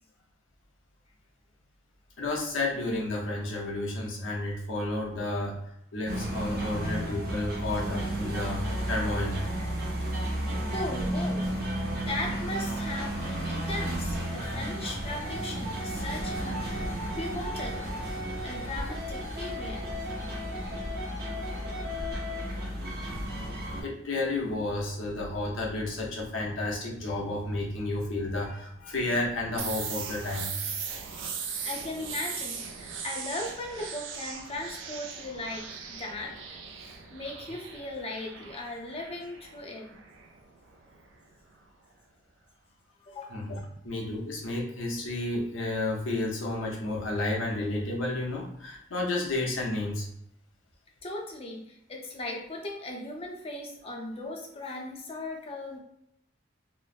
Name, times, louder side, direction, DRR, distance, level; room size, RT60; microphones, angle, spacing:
voice 1, 2.2-5.6 5.9-9.4 23.8-30.5 43.3-43.6 43.8-50.0, left 2 dB, 90° left, -2 dB, 0.8 m, -31 dB
sound 1, 6.1-23.8, right 1 dB, 50° right, 0.8 m, -33 dB
voice 2, 10.6-17.9 18.4-20.1 31.6-36.6 37.1-40.0 43.1-43.4 51.0-55.8, left 2 dB, 30° left, 0 dB, 0.5 m, -38 dB
sound 2, 29.6-41.2, right 6 dB, 70° right, 0.4 m, -39 dB
3.1 x 2.0 x 2.4 m, 0.77 s
head